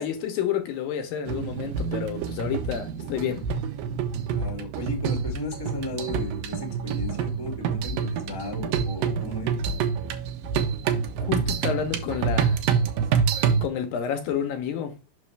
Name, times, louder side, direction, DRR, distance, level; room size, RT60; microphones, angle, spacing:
voice 1, 0.0-3.5 11.2-12.6 13.6-15.0, left 8 dB, 75° left, 2.4 m, -29 dB
sound 1, 1.3-13.7, right 6 dB, 70° right, 2.5 m, -27 dB
voice 2, 4.3-9.5, left 1 dB, 15° left, 0.7 m, -35 dB
6.1 x 6.1 x 3.3 m
omnidirectional pair, 4.5 m